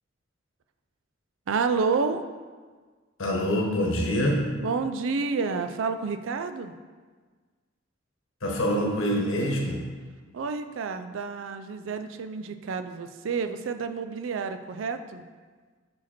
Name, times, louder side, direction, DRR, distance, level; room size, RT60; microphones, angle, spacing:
voice 1, 1.5-2.3 4.6-6.7 10.3-15.2, right 4 dB, 70° right, 9 dB, 0.4 m, -29 dB
voice 2, 3.2-4.4 8.4-9.8, equal, 80° left, 0 dB, 1.1 m, -25 dB
5.6 x 4.9 x 4.3 m, 1.5 s
head